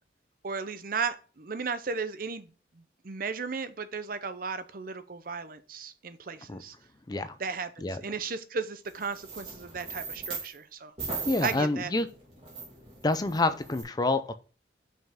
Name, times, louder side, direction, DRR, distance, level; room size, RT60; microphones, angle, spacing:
voice 1, 0.4-2.5 3.0-6.7 7.4-10.9 11.4-11.9, right 5 dB, 50° right, 0.7 m, -35 dB
sound 1, 8.9-10.6 11.0-13.8, right 4 dB, 30° right, 2.7 m, -39 dB
voice 2, 11.3-12.1 13.0-14.3, left 2 dB, 20° left, 0.4 m, -27 dB
5.6 x 5.4 x 3.5 m
head